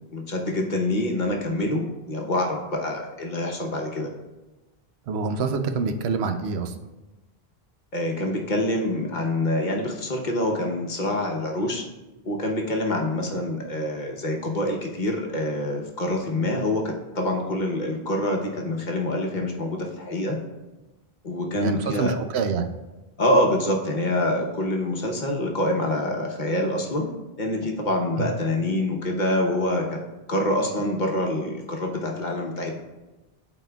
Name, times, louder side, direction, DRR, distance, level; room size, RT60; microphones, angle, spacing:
voice 1, 0.1-4.1 7.9-11.8 12.2-16.8 17.1-20.4 21.2-22.2 23.2-27.1 27.4-30.0 30.3-32.8, left 1 dB, 50° left, 0 dB, 1.0 m, -26 dB
voice 2, 5.1-6.7 21.6-22.7 28.2-28.3, right 5 dB, 80° right, 7 dB, 0.9 m, -26 dB
12.5 x 4.2 x 2.3 m, 1.1 s
omnidirectional pair, 1.1 m